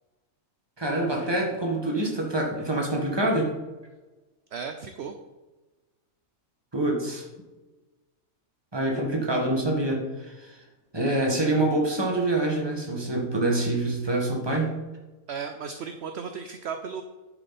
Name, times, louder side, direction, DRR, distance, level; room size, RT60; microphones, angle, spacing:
voice 1, 0.8-3.5 6.7-7.2 8.7-10.6 10.9-14.7, right 2 dB, 20° right, 0 dB, 1.8 m, -26 dB
voice 2, 4.5-5.1 15.3-17.0, right 6 dB, 60° right, 6 dB, 0.9 m, -35 dB
10.0 x 7.6 x 4.2 m, 1.1 s
omnidirectional pair, 1.4 m